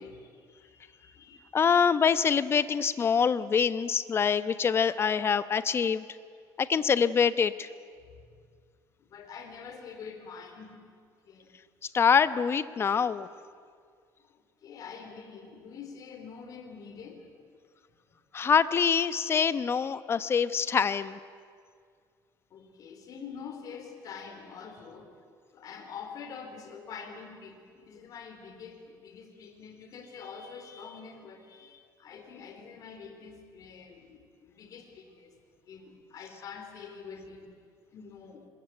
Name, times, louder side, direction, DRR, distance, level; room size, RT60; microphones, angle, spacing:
voice 1, 0.0-1.5 9.0-10.8 11.2-11.5 14.3-17.3 22.5-25.1 25.5-35.4 35.7-37.5 37.9-38.5, left 6 dB, 50° left, 5 dB, 3.6 m, -46 dB
voice 2, 1.5-6.1 6.6-7.7 11.9-13.3 18.3-21.2, left 6 dB, 35° left, 14 dB, 1.0 m, -25 dB
25.5 x 21.5 x 9.0 m, 2.1 s
cardioid pair, 125°, 8 cm